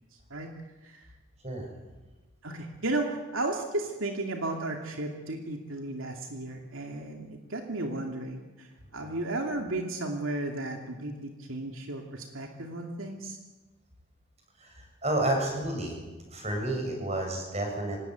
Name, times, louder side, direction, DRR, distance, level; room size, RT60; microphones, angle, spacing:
voice 1, 2.4-8.7 8.9-13.4, right 2 dB, 75° right, 3 dB, 2.6 m, -34 dB
voice 2, 14.6-16.0 16.3-18.0, right 1 dB, 30° right, 2 dB, 7.0 m, -30 dB
26.0 x 18.5 x 9.3 m, 1.2 s
head